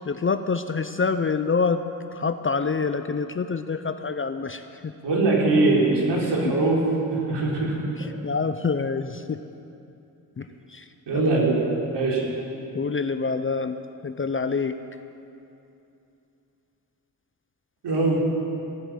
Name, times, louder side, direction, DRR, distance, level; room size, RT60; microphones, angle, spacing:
voice 1, 0.0-1.8 2.1-4.9 6.4-6.5 8.0-9.4 10.4-10.8 11.1-11.2 12.7-13.8 14.0-14.8, left 5 dB, 25° left, 10 dB, 0.6 m, -26 dB
voice 2, 5.0-6.8 7.1-7.8 11.1-11.6 11.9-12.2 17.8-18.2, right 2 dB, 65° right, -3 dB, 3.8 m, -21 dB
17.5 x 6.9 x 7.5 m, 2.8 s
hypercardioid pair, 45°, 46 cm